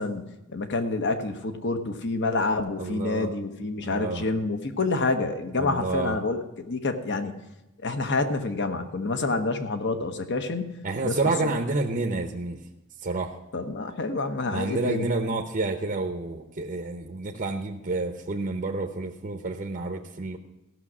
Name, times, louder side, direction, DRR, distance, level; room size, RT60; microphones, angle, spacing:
voice 1, 0.0-7.3 7.8-11.3 13.5-15.1, left 3 dB, 50° left, 7 dB, 1.0 m, -28 dB
voice 2, 2.8-3.3 3.8-4.3 5.6-6.2 10.8-12.6 13.0-13.4 14.5-20.4, right 3 dB, 35° right, 3 dB, 0.7 m, -29 dB
15.5 x 6.3 x 6.1 m, 1.0 s
head